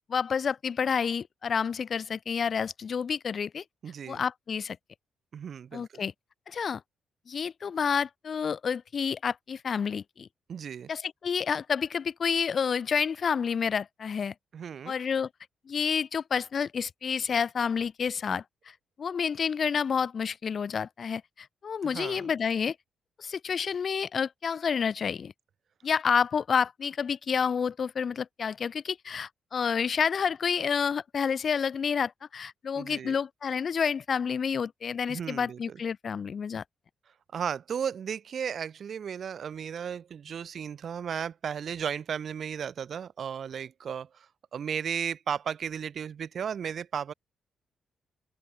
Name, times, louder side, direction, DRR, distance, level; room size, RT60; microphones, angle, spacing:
voice 1, 0.1-3.6 4.1-4.8 5.7-6.1 6.5-6.8 7.3-10.3 10.9-14.3 14.9-15.3 15.7-18.4 19.0-22.8 23.2-25.3 25.8-36.6, left 6 dB, 40° left, 0.4 m, -29 dB
voice 2, 3.8-4.2 5.3-5.9 10.5-10.9 14.5-14.9 21.8-22.3 32.8-33.2 35.1-35.8 37.3-44.3 44.5-47.1, right 7 dB, 50° right, 0.7 m, -35 dB
open air
cardioid pair, 150°, 0 cm